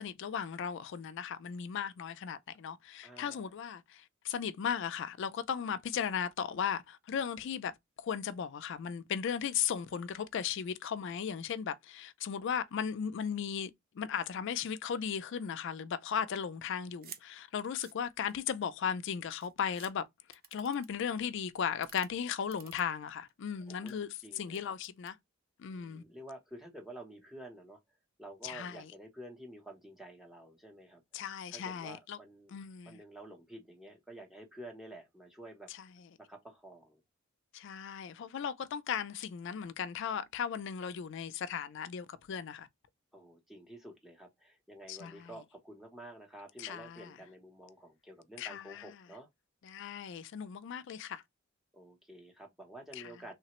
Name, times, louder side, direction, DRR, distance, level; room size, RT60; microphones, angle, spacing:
voice 1, 0.0-7.7 8.0-24.1 24.4-25.2 25.6-26.0 28.4-28.9 31.1-32.2 32.5-33.0 37.5-42.7 44.9-45.3 46.6-47.1 48.4-48.8 49.6-51.2 53.0-53.1, left 7 dB, 60° left, 0.3 m, -36 dB
voice 2, 3.0-3.5 23.6-23.9 24.2-24.7 25.7-27.8 28.2-31.0 31.5-32.6 32.8-35.7 36.2-37.0 43.1-49.3 51.7-53.3, right 1 dB, ahead, 0.6 m, -50 dB
sound 1, 17.0-17.2 17.6-18.5 19.1-19.2 19.4-19.9 20.3-21.0 21.7-22.1 22.5-23.3 23.7-23.9 24.5-25.1, right 8 dB, 45° right, 0.5 m, -51 dB
3.1 x 2.0 x 2.9 m
head